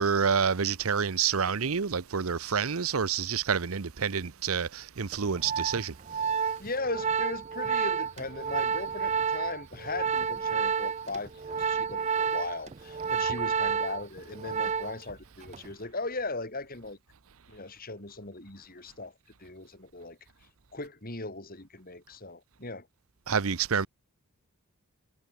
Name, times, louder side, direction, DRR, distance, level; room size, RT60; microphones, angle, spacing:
voice 1, 0.0-5.9 23.3-23.9, right 6 dB, 70° right, 0.8 m, -28 dB
Organ, 5.1-15.1 15.4-15.7, right 6 dB, 30° right, 0.5 m, -30 dB
voice 2, 6.6-17.0 17.5-19.1 19.4-20.2 20.7-22.9, left 3 dB, 40° left, 5.8 m, -38 dB
head